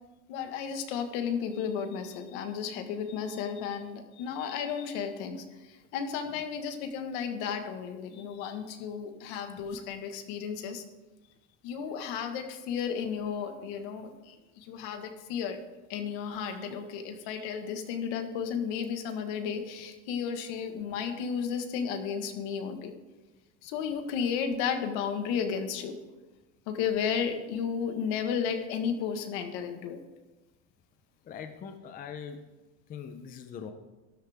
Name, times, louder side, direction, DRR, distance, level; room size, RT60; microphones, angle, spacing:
voice 1, 0.3-10.8 11.6-15.6 15.9-22.9 23.6-26.0 26.7-30.0, left 7 dB, 70° left, 6 dB, 1.6 m, -33 dB
voice 2, 31.2-32.4 32.9-33.7, left 7 dB, 25° left, 7 dB, 0.6 m, -41 dB
12.5 x 12.0 x 3.6 m, 1.1 s
cardioid pair, 160°, 36 cm